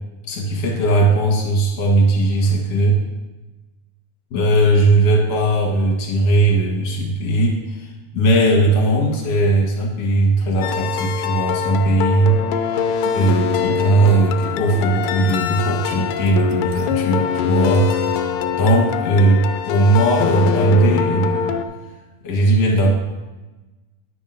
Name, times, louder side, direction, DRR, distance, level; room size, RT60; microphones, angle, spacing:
voice 1, 0.3-3.0 4.3-12.4 13.1-17.9 18.5-21.6 22.2-22.9, right 2 dB, 60° left, -1 dB, 1.8 m, -18 dB
sound 1, 10.6-21.6, left 7 dB, 85° left, 2.0 m, -23 dB
sound 2, 13.1-18.4, right 5 dB, 90° right, 1.7 m, -38 dB
12.0 x 9.5 x 2.6 m, 1.1 s
omnidirectional pair, 4.5 m